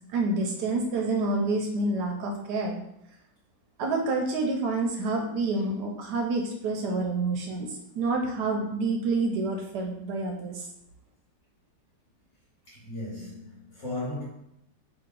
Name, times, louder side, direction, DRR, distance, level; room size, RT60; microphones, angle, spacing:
voice 1, 0.1-2.8 3.8-7.7 8.0-10.7, right 3 dB, 75° right, 2 dB, 1.1 m, -28 dB
voice 2, 12.7-14.2, left 2 dB, 45° left, -8 dB, 1.3 m, -36 dB
2.9 x 2.9 x 3.7 m, 0.77 s
omnidirectional pair, 1.9 m